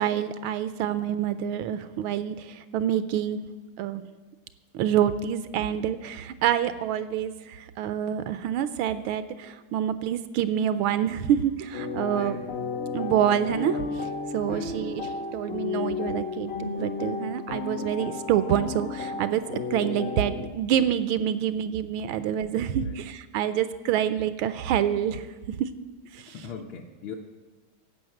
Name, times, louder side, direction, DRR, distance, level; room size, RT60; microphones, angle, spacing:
voice 1, 0.0-3.4 3.8-4.0 4.7-12.4 12.9-25.7 26.1-26.4, right 10 dB, 80° right, 12 dB, 1.4 m, -27 dB
sound 1, 11.7-20.5, left 4 dB, 50° left, 0.7 m, -33 dB
voice 2, 12.0-12.4 14.5-14.8 22.8-23.0 26.3-27.2, left 6 dB, 70° left, 0 dB, 1.6 m, -40 dB
15.5 x 5.6 x 7.7 m, 1.3 s
omnidirectional pair, 2.3 m